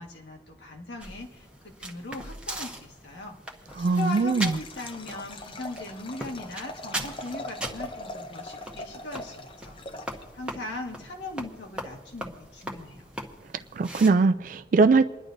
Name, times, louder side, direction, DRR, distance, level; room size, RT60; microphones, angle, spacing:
voice 1, 0.0-9.8 10.1-13.1, left 2 dB, 75° left, 1 dB, 1.6 m, -39 dB
sound 1, 1.0-14.1, right 1 dB, 5° right, 1.0 m, -40 dB
Liquid, 3.7-10.5, left 2 dB, 30° left, 0.7 m, -42 dB
voice 2, 3.8-4.5 13.8-15.0, right 4 dB, 45° right, 8 dB, 0.3 m, -21 dB
29.0 x 11.0 x 2.6 m, 1.2 s
head